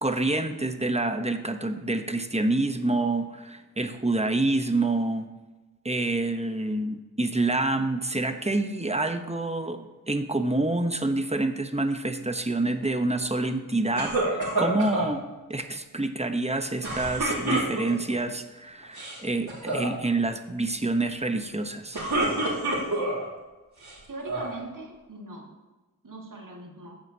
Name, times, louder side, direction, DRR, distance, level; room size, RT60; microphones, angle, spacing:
voice 1, 0.0-5.3 5.8-15.2 15.5-22.0, right 2 dB, 15° right, 7 dB, 0.8 m, -27 dB
sound 1, 14.0-15.1 16.8-18.1 18.8-19.2 19.5-19.9 21.7-23.2 23.8-24.6, right 2 dB, 90° right, 2.9 m, -28 dB
voice 2, 24.1-25.5 26.0-27.0, right 2 dB, 55° right, 0 dB, 1.8 m, -41 dB
14.5 x 7.7 x 2.8 m, 1.2 s
cardioid pair, 40°, 37 cm